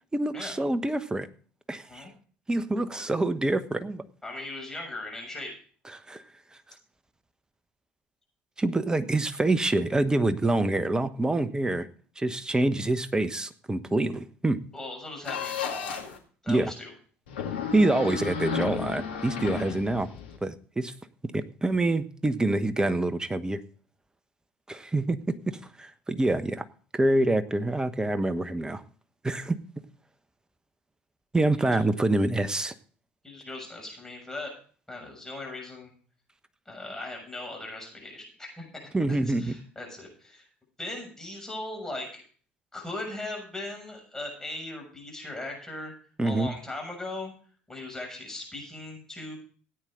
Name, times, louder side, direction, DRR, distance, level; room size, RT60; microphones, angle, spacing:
voice 1, 0.1-1.3 1.7-2.0 2.5-4.0 5.9-6.2 8.6-11.9 12.2-14.6 16.5-16.7 17.7-20.1 20.4-20.9 21.3-23.6 24.7-26.6 26.9-28.8 29.2-29.6 31.3-32.7 38.9-39.6 46.2-46.5, right 2 dB, 15° right, 13 dB, 1.1 m, -26 dB
voice 2, 4.2-5.5 14.7-16.0 16.4-16.9 31.6-31.8 33.2-34.5 34.9-35.9 36.7-40.5 40.8-42.2 42.7-45.9 46.2-47.3 47.7-49.4, left 2 dB, 10° left, 0 dB, 6.8 m, -39 dB
sound 1, 15.2-16.2 17.3-20.4, left 6 dB, 75° left, 2.3 m, -33 dB
17.0 x 9.2 x 3.8 m, 0.43 s
figure-of-eight pair, 65°, 6 cm